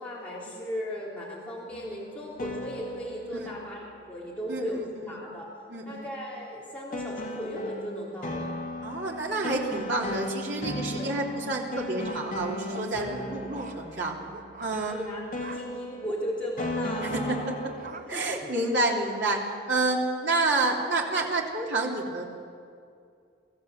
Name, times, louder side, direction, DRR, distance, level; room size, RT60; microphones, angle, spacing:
voice 1, 0.0-4.8 5.1-5.5 5.8-8.5 10.9-11.1 14.9-17.4 18.1-18.4 19.9-20.0, equal, 5° left, -6 dB, 3.4 m, -36 dB
sound 1, 1.7-4.6 6.9-18.0, left 1 dB, 50° left, 2.3 m, -37 dB
voice 2, 5.7-6.1 8.8-14.1 14.6-15.0 17.0-17.5 18.1-19.4 19.7-22.2, right 2 dB, 80° right, -1 dB, 3.2 m, -29 dB
sound 2, 11.1-11.2 12.1-12.9 13.5-13.8 14.3-14.7 15.4-15.6 16.0-16.2 17.0-17.3 17.7-18.0 18.4-18.9, right 3 dB, 45° right, 1.2 m, -44 dB
23.5 x 14.5 x 7.9 m, 2.3 s
head